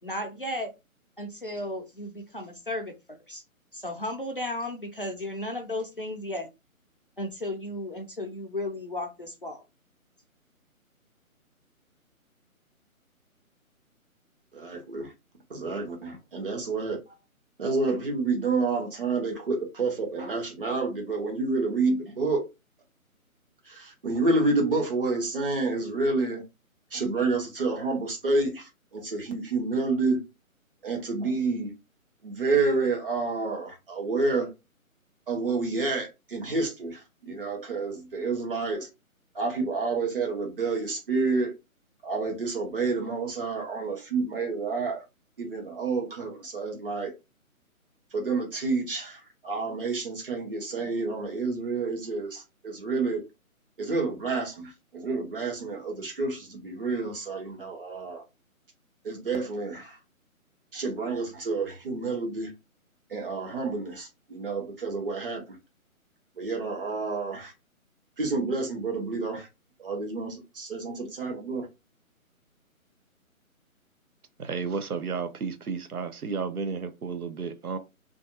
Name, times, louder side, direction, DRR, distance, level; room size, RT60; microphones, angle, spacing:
voice 1, 0.0-0.7 1.2-3.4 3.7-6.5 7.2-9.6, left 1 dB, 40° left, 0.4 m, -34 dB
voice 2, 14.5-15.1 15.5-17.0 17.6-22.4 23.7-26.4 26.9-30.2 30.8-31.7 32.2-34.5 35.3-38.9 39.3-41.5 42.0-45.0 45.4-47.1 48.1-53.2 53.8-58.2 59.0-60.0 60.7-62.5 63.1-65.4 66.4-67.5 68.2-69.5 69.8-71.7, right 3 dB, 40° right, 0.9 m, -29 dB
voice 3, 74.4-77.8, right 5 dB, 85° right, 0.6 m, -32 dB
2.5 x 2.3 x 2.6 m
figure-of-eight pair, 145°, 43 cm